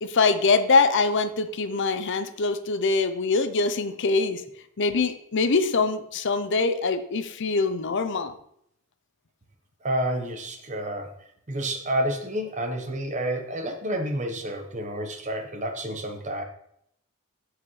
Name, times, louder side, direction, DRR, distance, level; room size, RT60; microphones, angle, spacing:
voice 1, 0.0-4.4 4.8-8.4, left 4 dB, 60° left, 10 dB, 0.6 m, -23 dB
voice 2, 9.8-11.1 11.5-16.4, right 1 dB, 35° right, 5 dB, 1.1 m, -29 dB
14.5 x 4.9 x 3.2 m, 0.71 s
head